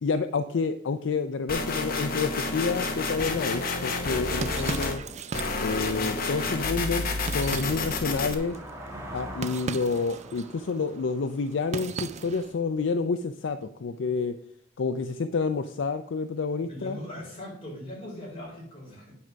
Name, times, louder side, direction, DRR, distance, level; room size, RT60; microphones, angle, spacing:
voice 1, 0.0-5.0 5.6-7.1 7.3-8.6 9.1-14.4 14.8-17.0, left 4 dB, 65° left, 9 dB, 0.4 m, -29 dB
sound 1, 1.5-5.0 5.3-8.3, left 3 dB, 45° left, 1.1 m, -30 dB
sound 2, 3.9-12.6, right 5 dB, 35° right, 0.4 m, -39 dB
voice 2, 6.4-6.7 16.6-19.1, left 1 dB, 30° left, -3 dB, 4.2 m, -41 dB
sound 3, 6.5-12.5, right 1 dB, 15° right, 1.7 m, -45 dB
9.9 x 4.5 x 6.1 m, 0.71 s
head